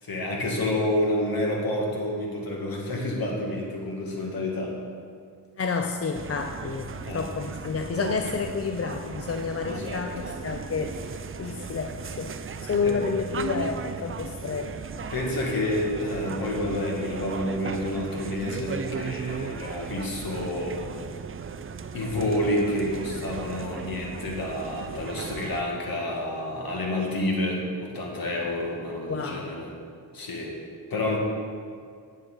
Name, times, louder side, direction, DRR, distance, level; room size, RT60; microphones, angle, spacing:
voice 1, 0.0-4.7 7.1-7.2 9.7-10.3 12.8-13.0 15.1-20.8 21.9-29.7 30.1-30.6 30.9-31.2, left 1 dB, 60° left, -1 dB, 2.2 m, -29 dB
voice 2, 5.6-14.8 29.1-29.6, left 5 dB, 35° left, 5 dB, 0.6 m, -30 dB
sound 1, 6.1-25.6, right 6 dB, 30° right, 0.5 m, -36 dB
9.6 x 7.6 x 4.0 m, 2.1 s
supercardioid pair, 50°, 41 cm